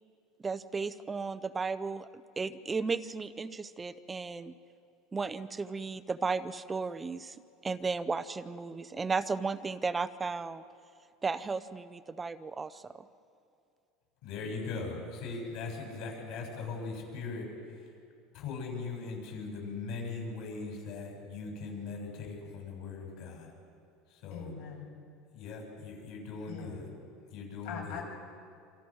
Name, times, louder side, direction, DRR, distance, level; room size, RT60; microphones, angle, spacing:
voice 1, 0.4-2.1 2.4-4.5 5.1-10.6 11.2-12.9, right 4 dB, 10° right, 13 dB, 0.6 m, -34 dB
voice 2, 14.2-18.0 18.3-23.5 24.1-24.5 25.3-26.9 27.3-28.0, left 4 dB, 50° left, 1 dB, 7.3 m, -40 dB
voice 3, 24.3-24.9 26.5-26.8 27.6-28.0, left 6 dB, 65° left, 1 dB, 6.5 m, -41 dB
27.5 x 26.5 x 6.3 m, 2.4 s
cardioid pair, 175°, 0 cm